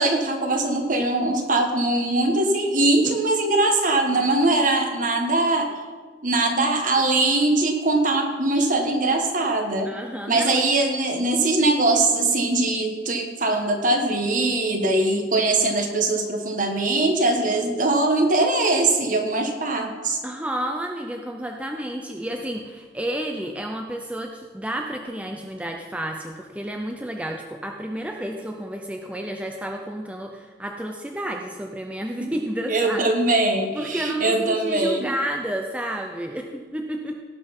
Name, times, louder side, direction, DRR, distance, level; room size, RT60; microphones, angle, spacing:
voice 1, 0.0-5.7 6.2-9.9 10.3-20.2 32.7-35.1, right 2 dB, 45° right, 4 dB, 1.4 m, -21 dB
voice 2, 9.8-10.6 20.2-33.1 33.7-37.2, right 1 dB, 5° right, 3 dB, 0.6 m, -31 dB
17.5 x 5.9 x 5.4 m, 1.4 s
head